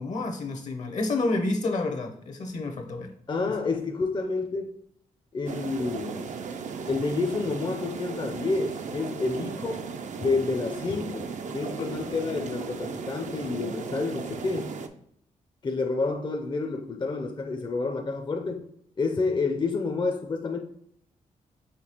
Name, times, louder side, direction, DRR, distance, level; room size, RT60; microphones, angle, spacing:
voice 1, 0.0-3.1, left 2 dB, 60° left, 0.8 m, -29 dB
voice 2, 3.3-4.7 5.3-6.3 6.9-14.7 15.6-18.7 19.0-20.6, left 3 dB, 35° left, 0.5 m, -29 dB
sound 1, 5.5-14.9, right 5 dB, 60° right, 0.5 m, -36 dB
5.9 x 2.8 x 2.9 m
cardioid pair, 60°, 14 cm